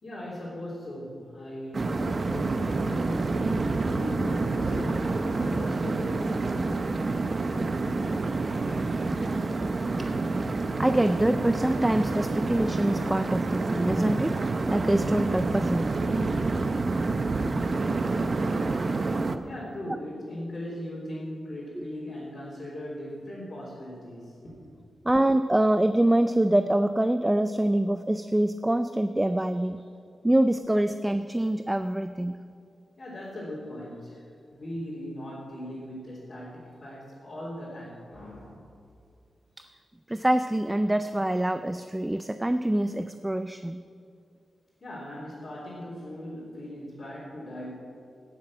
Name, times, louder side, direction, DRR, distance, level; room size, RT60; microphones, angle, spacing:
voice 1, 0.0-6.4 19.4-24.6 33.0-38.6 44.8-47.7, left 1 dB, 40° left, -8 dB, 3.5 m, -39 dB
sound 1, 1.7-19.4, right 3 dB, 35° right, 0.7 m, -28 dB
voice 2, 10.8-14.4 14.7-15.9 21.8-21.9 25.0-29.8 30.2-32.4 39.6-39.7 40.1-43.8, right 1 dB, 10° right, 10 dB, 0.3 m, -25 dB
17.5 x 7.4 x 6.3 m, 2.4 s
wide cardioid pair, 145°, 0 cm